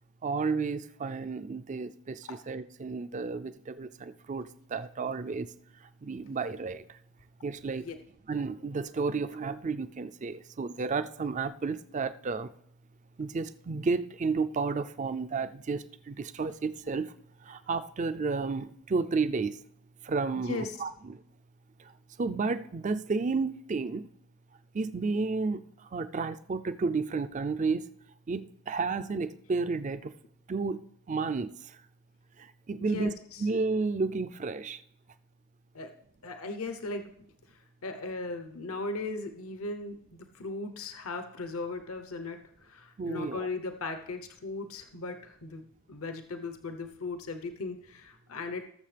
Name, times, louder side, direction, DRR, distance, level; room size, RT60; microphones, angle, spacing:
voice 1, 0.2-5.5 6.0-6.8 7.4-7.9 8.3-12.5 13.2-17.1 17.4-19.6 20.0-21.2 22.2-24.1 24.7-25.6 25.9-27.9 28.3-30.1 30.5-31.5 32.4-34.8 43.0-43.5, right 4 dB, 35° right, 12 dB, 0.4 m, -32 dB
voice 2, 20.3-20.7 32.8-33.5 35.7-35.9 36.2-37.0 37.8-48.7, left 3 dB, 75° left, 7 dB, 0.9 m, -38 dB
18.0 x 7.2 x 3.4 m, 0.70 s
head